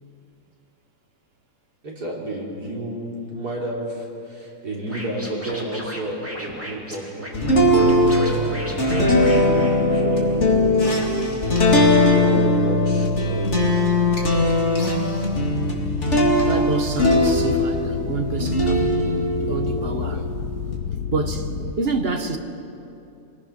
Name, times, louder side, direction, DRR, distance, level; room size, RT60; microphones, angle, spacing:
voice 1, 1.8-13.7 14.4-14.6, right 1 dB, 80° right, 4.3 m, -32 dB
Scratching (performance technique), 4.9-10.4, equal, 10° right, 2.4 m, -36 dB
sound 1, 7.3-17.9 18.4-20.7, left 1 dB, 45° left, 3.0 m, -19 dB
sound 2, 15.3-21.7, left 7 dB, 65° left, 1.3 m, -30 dB
voice 2, 16.5-19.0 19.5-20.2 21.1-22.4, right 3 dB, 40° right, 1.4 m, -27 dB
25.0 x 19.5 x 6.0 m
omnidirectional pair, 1.7 m